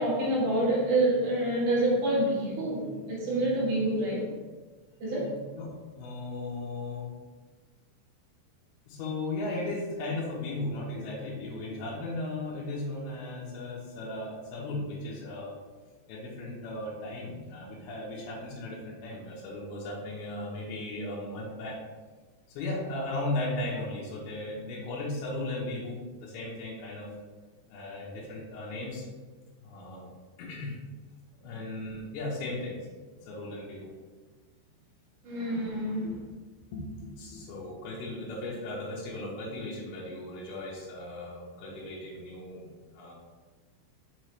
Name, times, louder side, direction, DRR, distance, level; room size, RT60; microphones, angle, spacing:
voice 1, 0.0-4.3 5.0-5.3 35.2-36.1, right 1 dB, 60° right, -5 dB, 2.2 m, -27 dB
voice 2, 5.6-7.1 8.9-15.5 16.1-21.8 22.5-27.1 27.7-29.0 29.6-30.1 30.4-30.8 31.4-32.8 33.2-33.9 36.0-36.1 36.5-43.1, left 2 dB, 70° left, -5 dB, 2.7 m, -36 dB
6.1 x 6.0 x 3.2 m, 1.3 s
omnidirectional pair, 5.6 m